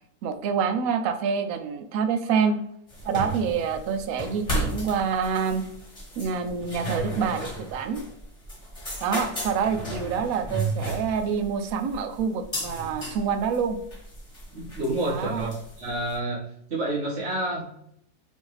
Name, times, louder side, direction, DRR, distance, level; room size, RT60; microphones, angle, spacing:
voice 1, 0.2-2.6 3.0-5.6 6.2-8.0 9.0-13.8 15.1-15.5, right 6 dB, 70° right, 7 dB, 0.9 m, -27 dB
sound 1, 2.9-16.1, right 1 dB, 25° left, 1.2 m, -34 dB
voice 2, 14.5-16.4 16.7-17.6, right 1 dB, 45° right, -5 dB, 1.6 m, -29 dB
5.2 x 2.6 x 3.2 m, 0.72 s
omnidirectional pair, 1.7 m